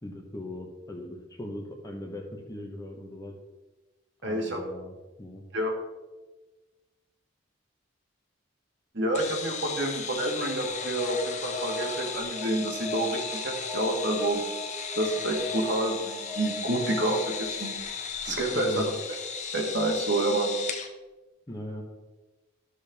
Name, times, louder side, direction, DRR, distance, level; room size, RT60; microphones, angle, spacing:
voice 1, 0.0-3.3 4.2-5.4 18.5-18.9 21.5-21.8, left 1 dB, 20° left, 2 dB, 1.1 m, -39 dB
voice 2, 4.2-4.6 5.5-5.8 8.9-14.4 14.9-17.7 18.2-18.9 19.5-20.5, right 1 dB, 60° right, 1 dB, 1.6 m, -28 dB
sound 1, 9.1-20.9, left 6 dB, 40° left, 0.8 m, -36 dB
Alarm, 10.6-17.7, equal, 15° right, 1.5 m, -38 dB
12.0 x 6.5 x 3.5 m, 1.2 s
head